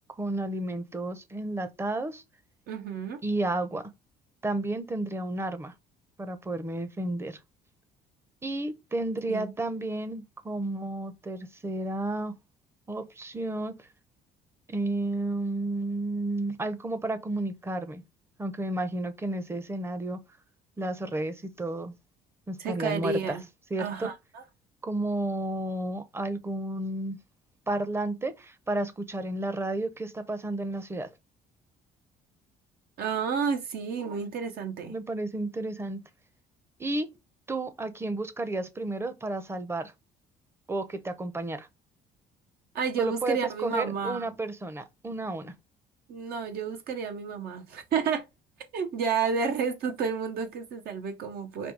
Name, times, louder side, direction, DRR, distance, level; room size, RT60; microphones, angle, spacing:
voice 1, 0.2-2.2 3.2-3.9 4.4-5.7 6.2-7.4 8.4-12.3 12.9-13.9 14.7-18.0 18.4-20.2 20.8-21.9 22.5-23.4 23.7-24.1 24.8-27.2 27.7-31.1 34.9-36.0 36.8-37.1 37.5-39.9 40.7-41.7 43.0-45.5, right 2 dB, 15° right, 0.7 m, -32 dB
voice 2, 2.7-3.2 9.3-9.5 22.6-23.4 23.8-24.4 33.0-34.9 42.7-44.2 46.1-48.3 48.7-51.7, right 6 dB, 65° right, 0.9 m, -31 dB
5.1 x 2.3 x 4.6 m
cardioid pair, 110°, 17 cm